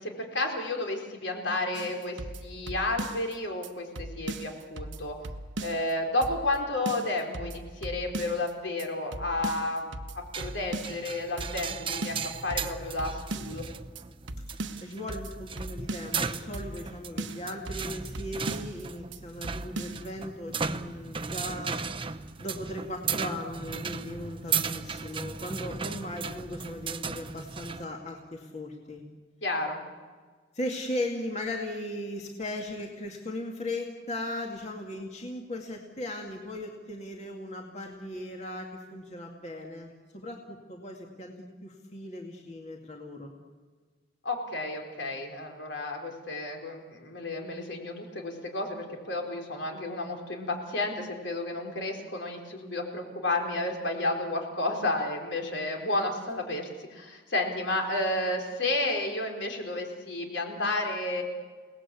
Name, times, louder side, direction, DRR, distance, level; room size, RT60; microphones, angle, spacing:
voice 1, 0.0-5.2 5.6-12.2 12.4-13.6 29.4-29.8 44.2-61.2, left 2 dB, 70° left, 3 dB, 4.3 m, -31 dB
sound 1, 1.7-3.3 3.6-3.7 4.0-5.9 6.2-6.6 6.9-8.5 8.8-8.9 9.1-11.1 11.4-11.7 12.0-13.7 14.0-14.1 14.3-16.2 16.5-16.9 17.2-18.8 19.1-19.2 19.4-20.0, right 2 dB, 75° right, 1.2 m, -38 dB
sound 2, 10.3-27.8, right 5 dB, 25° right, 0.8 m, -36 dB
voice 2, 14.5-21.8 22.4-29.0 30.5-41.3 41.6-43.3, left 1 dB, 35° left, 1 dB, 2.3 m, -37 dB
30.0 x 18.5 x 8.5 m, 1.5 s
head